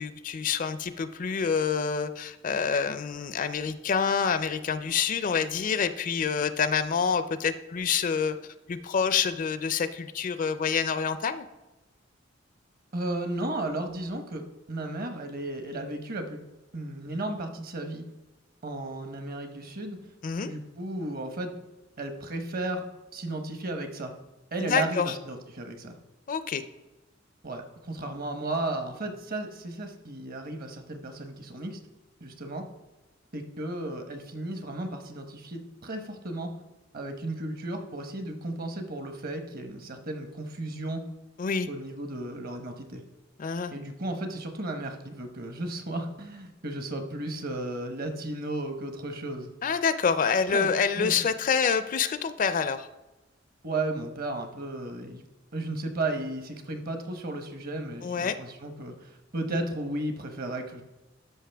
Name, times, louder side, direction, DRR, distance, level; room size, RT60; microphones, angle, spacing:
voice 1, 0.0-8.4 8.7-11.5 20.2-20.5 24.6-25.1 26.3-26.6 41.4-41.7 43.4-43.7 49.6-52.9 58.0-58.4, left 6 dB, 45° left, 12 dB, 0.4 m, -27 dB
voice 2, 12.9-16.4 16.7-18.0 18.6-20.0 20.4-21.5 22.0-22.8 23.1-24.1 24.5-26.0 27.4-31.8 32.2-32.6 33.3-36.5 36.9-41.0 41.7-43.0 43.7-49.5 50.5-50.7 51.0-51.2 53.6-55.2 55.5-60.8, right 2 dB, 50° right, 6 dB, 1.0 m, -34 dB
12.5 x 5.4 x 3.4 m, 1.0 s
head